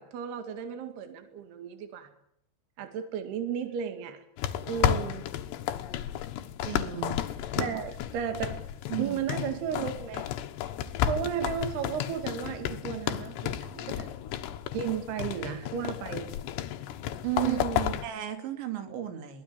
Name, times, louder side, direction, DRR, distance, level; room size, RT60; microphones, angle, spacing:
voice 1, 0.0-2.1 2.8-4.2 4.7-5.2 7.6-8.6 9.0-10.3 11.1-14.1 14.7-16.3 17.4-18.0, right 8 dB, 65° right, 8 dB, 4.0 m, -34 dB
sound 1, 4.4-18.1, left 11 dB, 80° left, 3.3 m, -33 dB
voice 2, 6.6-7.2 7.6-7.7 8.9-9.2 17.2-17.6 18.0-19.4, right 12 dB, 85° right, 7 dB, 4.8 m, -34 dB
22.0 x 18.5 x 8.8 m, 0.75 s
omnidirectional pair, 5.1 m